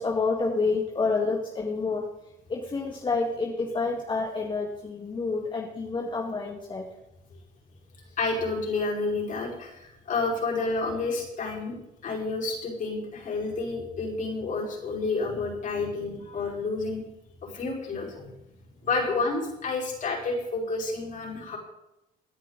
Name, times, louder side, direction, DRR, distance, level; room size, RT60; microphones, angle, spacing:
voice 1, 0.0-2.0 2.5-6.8, left 4 dB, 30° left, 0 dB, 1.9 m, -28 dB
voice 2, 8.2-11.8 12.0-17.0 17.5-18.3 18.8-21.6, left 3 dB, 50° left, -1 dB, 5.1 m, -30 dB
17.5 x 10.5 x 4.1 m, 0.91 s
cardioid pair, 110°, 17 cm